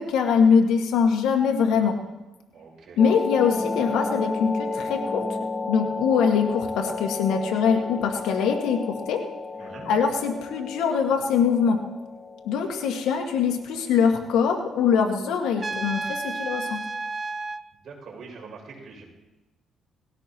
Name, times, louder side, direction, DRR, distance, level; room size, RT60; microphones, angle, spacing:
voice 1, 0.0-2.0 3.0-5.2 5.7-9.2 9.9-11.8 12.4-16.8, left 6 dB, 90° left, 3 dB, 1.9 m, -23 dB
voice 2, 2.5-3.0 9.6-9.9 17.8-19.0, right 4 dB, 65° right, -1 dB, 6.6 m, -43 dB
sound 1, 3.0-14.5, left 3 dB, 15° left, 1.4 m, -33 dB
Trumpet, 15.6-17.6, right 3 dB, 25° right, 0.7 m, -31 dB
19.5 x 17.0 x 3.1 m, 1.0 s
cardioid pair, 90°, 0 cm